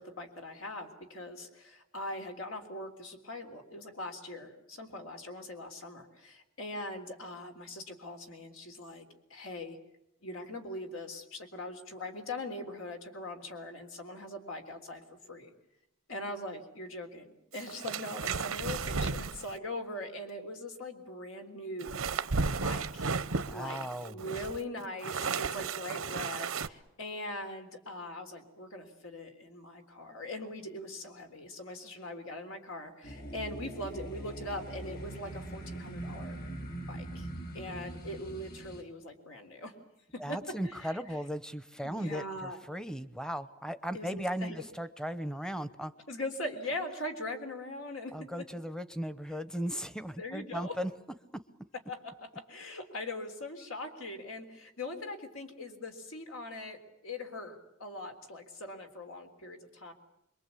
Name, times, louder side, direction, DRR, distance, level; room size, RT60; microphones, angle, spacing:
voice 1, 0.0-9.8 10.2-15.0 15.3-15.5 16.1-22.0 22.5-23.1 23.5-36.4 36.9-37.3 37.5-39.8 40.1-40.4 40.8-41.0 41.8-42.6 43.9-44.6 46.1-48.5 50.2-50.8 51.9-59.9, left 1 dB, 80° left, 5 dB, 3.7 m, -41 dB
sound 1, 17.5-19.6 21.8-26.7, right 4 dB, 90° right, 0.9 m, -34 dB
voice 2, 23.4-24.2 40.2-45.9 48.1-50.9, equal, 5° left, 13 dB, 0.9 m, -37 dB
sound 2, 33.0-38.8, right 1 dB, 50° left, 3.7 m, -42 dB
26.0 x 22.5 x 8.5 m, 0.85 s
head